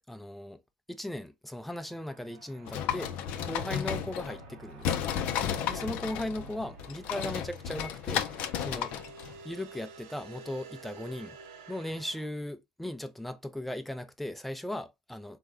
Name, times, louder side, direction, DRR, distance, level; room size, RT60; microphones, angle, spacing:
voice 1, 0.1-0.6 0.9-3.1 3.4-5.1 5.4-8.9 9.4-11.4 11.7-15.4, left 1 dB, 5° left, 0.4 m, -38 dB
sound 1, 1.8-12.3, right 4 dB, 80° right, 0.7 m, -50 dB
sound 2, 2.7-4.5 4.8-9.4, left 9 dB, 65° left, 0.5 m, -33 dB
3.6 x 2.1 x 3.4 m
supercardioid pair, 100°, 3 cm